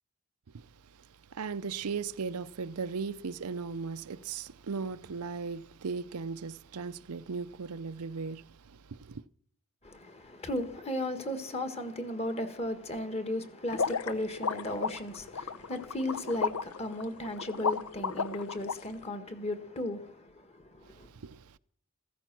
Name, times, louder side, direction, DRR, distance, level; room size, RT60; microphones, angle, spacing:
voice 1, 1.0-9.2 20.8-21.6, right 5 dB, 90° right, 0.6 m, -37 dB
voice 2, 9.8-21.1, left 1 dB, 30° left, 1.6 m, -35 dB
sound 1, 13.7-18.7, left 5 dB, 80° left, 0.8 m, -33 dB
15.0 x 14.5 x 6.0 m
head